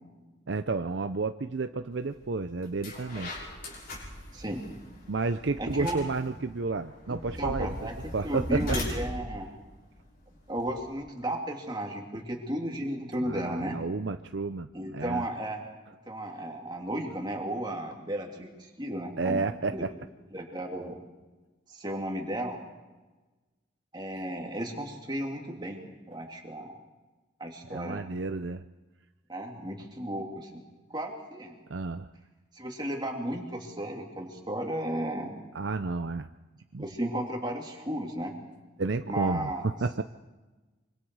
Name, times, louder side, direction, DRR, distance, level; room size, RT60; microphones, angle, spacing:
voice 1, 0.5-3.5 5.1-7.7 8.1-8.8 13.2-15.3 19.2-19.9 27.7-28.7 31.7-32.1 35.5-36.3 36.7-36.9 38.8-40.0, right 3 dB, 60° right, 9 dB, 0.6 m, -31 dB
sound 1, 2.1-2.3 2.6-10.9, left 1 dB, 45° left, 6.5 m, -39 dB
voice 2, 5.6-6.0 7.1-9.5 10.5-13.8 14.7-15.6 16.1-19.4 19.7-19.8 20.3-21.0 21.7-22.6 23.9-26.8 27.4-28.0 29.3-30.6 30.9-31.5 32.5-35.3 36.8-38.3 39.1-39.6, right 1 dB, 20° right, 1 dB, 3.0 m, -34 dB
25.5 x 25.5 x 4.8 m, 1.2 s
head